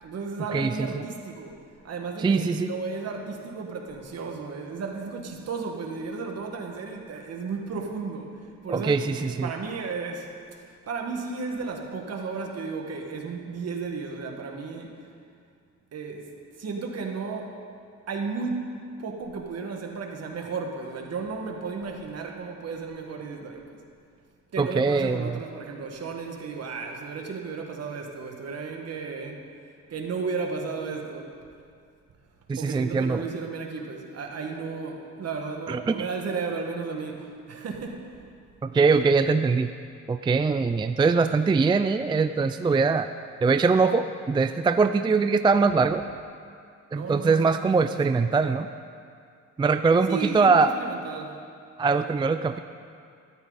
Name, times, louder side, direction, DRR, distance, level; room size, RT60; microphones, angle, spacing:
voice 1, 0.0-14.9 15.9-16.3 16.6-17.6 18.1-23.8 24.5-29.5 29.9-31.3 32.5-38.2 46.9-48.2 50.1-51.4, right 4 dB, 55° right, 2 dB, 1.8 m, -34 dB
voice 2, 0.5-1.0 2.2-2.7 8.7-9.5 24.6-25.3 32.5-33.2 35.7-36.1 38.6-39.7 40.1-43.1 43.4-46.0 46.9-48.7 49.6-50.7 51.8-52.6, right 4 dB, 15° right, 9 dB, 0.3 m, -22 dB
13.5 x 13.0 x 4.1 m, 2.3 s
cardioid pair, 90°, 30 cm